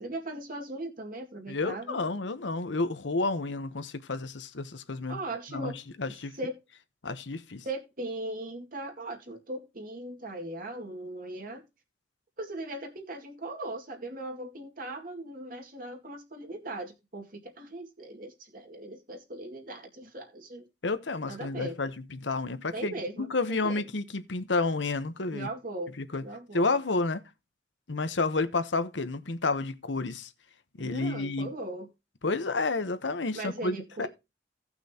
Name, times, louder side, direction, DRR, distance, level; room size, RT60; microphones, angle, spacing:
voice 1, 0.0-2.0 5.1-5.8 6.4-6.5 7.6-11.6 12.4-20.7 21.3-21.8 22.7-23.3 23.6-23.8 25.3-25.9 26.2-26.7 30.8-31.9 33.3-34.1, right 2 dB, 50° right, 2.1 m, -38 dB
voice 2, 1.5-5.2 5.5-6.4 7.0-7.7 20.8-22.9 23.2-25.5 26.0-26.3 26.5-27.2 27.9-30.3 30.8-31.5 32.2-34.1, left 3 dB, 90° left, 1.0 m, -30 dB
17.0 x 6.0 x 2.9 m
head